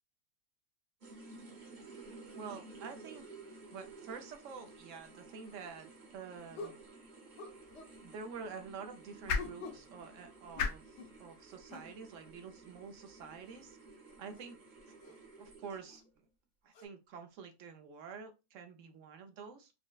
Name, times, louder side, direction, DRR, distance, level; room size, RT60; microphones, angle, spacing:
sound 1, 1.0-16.1, right 3 dB, 40° right, 0.8 m, -54 dB
voice 1, 2.3-3.3 3.7-6.7 8.0-13.8 14.2-14.6 14.9-16.3 16.6-19.7, right 5 dB, 70° right, 6 dB, 0.9 m, -48 dB
sound 2, 5.5-5.6 6.5-6.9 7.4-8.0 9.3-9.9 10.5-11.2 11.7-11.9 13.5-13.7 14.3-14.5 15.0-15.2 15.9-16.0 16.7-16.8, left 3 dB, 60° left, 0.8 m, -48 dB
sound 3, 7.5-13.7, left 5 dB, 85° left, 1.1 m, -43 dB
4.6 x 2.1 x 2.3 m, 0.27 s
omnidirectional pair, 1.5 m